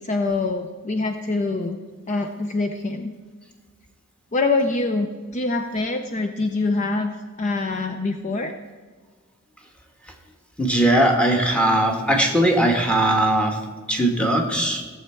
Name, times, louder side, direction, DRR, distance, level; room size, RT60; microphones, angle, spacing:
voice 1, 0.0-1.8 2.1-3.1 4.3-7.1 7.4-8.6, left 3 dB, 35° left, 6 dB, 0.5 m, -24 dB
voice 2, 10.6-13.6 13.9-14.8, right 1 dB, 5° left, 2 dB, 1.3 m, -19 dB
16.0 x 7.2 x 4.4 m, 1.5 s
head